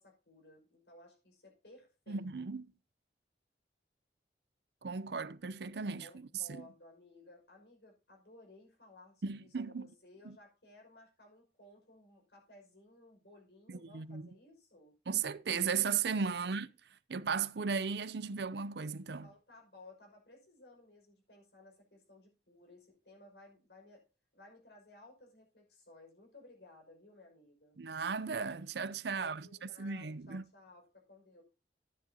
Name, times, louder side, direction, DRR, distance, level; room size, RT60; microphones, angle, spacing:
voice 1, 0.0-2.3 6.0-15.0 16.4-16.6 19.2-24.0 24.3-27.8 29.2-31.4, left 2 dB, 75° left, 5.5 m, -58 dB
voice 2, 2.1-2.7 4.8-6.1 6.5-6.7 9.2-9.9 10.2-10.4 13.7-14.3 15.1-16.7 17.1-19.3 27.8-29.5 29.8-30.4, right 5 dB, 70° right, 0.6 m, -36 dB
13.0 x 10.0 x 2.8 m
head